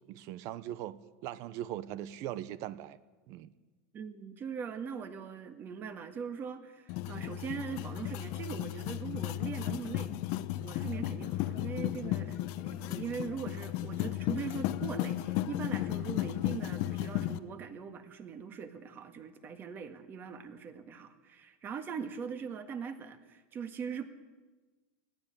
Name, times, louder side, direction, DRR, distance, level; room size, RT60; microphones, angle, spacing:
voice 1, 0.1-3.0 3.3-3.5, right 12 dB, 50° right, 1.0 m, -40 dB
voice 2, 3.9-10.1 10.6-24.1, right 6 dB, 30° right, 1.8 m, -41 dB
sound 1, 6.9-17.4, left 14 dB, 55° left, 0.9 m, -34 dB
20.0 x 15.5 x 9.1 m
supercardioid pair, 140°, 7 cm